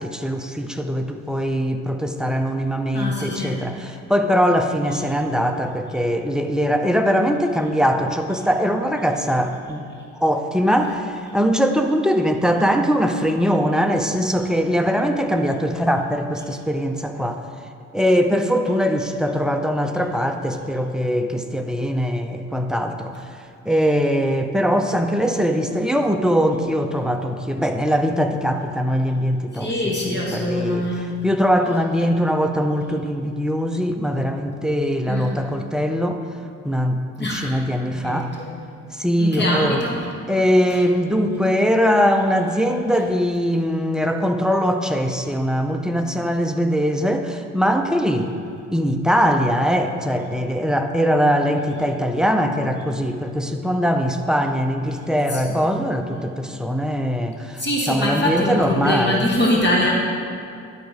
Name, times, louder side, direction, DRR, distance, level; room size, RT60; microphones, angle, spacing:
voice 1, 0.0-9.8 10.2-17.4 17.9-23.3 23.7-36.2 36.6-38.3 38.9-40.0 40.3-48.3 48.7-59.3, equal, ahead, 5 dB, 0.5 m, -21 dB
voice 2, 2.9-3.6 29.5-31.3 35.1-35.3 37.2-37.5 37.9-38.5 39.2-40.0 55.3-55.5 57.6-59.9, left 1 dB, 35° left, -3 dB, 1.6 m, -23 dB
11.5 x 4.1 x 4.9 m, 2.3 s
cardioid pair, 90°, 30 cm